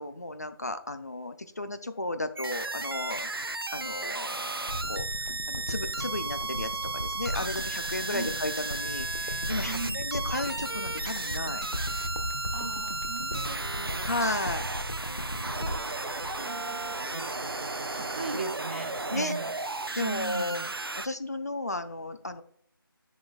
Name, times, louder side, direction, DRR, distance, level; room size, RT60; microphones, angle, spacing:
voice 1, 0.0-3.3 3.7-5.1 5.5-11.7 14.1-14.7 19.1-19.3 19.9-20.6 21.0-22.4, left 2 dB, 45° left, 10 dB, 0.4 m, -34 dB
sound 1, 2.4-21.1, right 2 dB, 75° right, 0.5 m, -34 dB
sound 2, 4.7-17.1 17.4-17.5, left 1 dB, 90° left, 1.0 m, -37 dB
voice 2, 9.7-10.0 12.5-14.0 15.1-15.8 16.4-17.3 17.9-19.5 20.0-20.7, right 3 dB, 25° right, 3 dB, 0.8 m, -39 dB
10.0 x 4.0 x 2.3 m, 0.67 s
figure-of-eight pair, 165°, 12 cm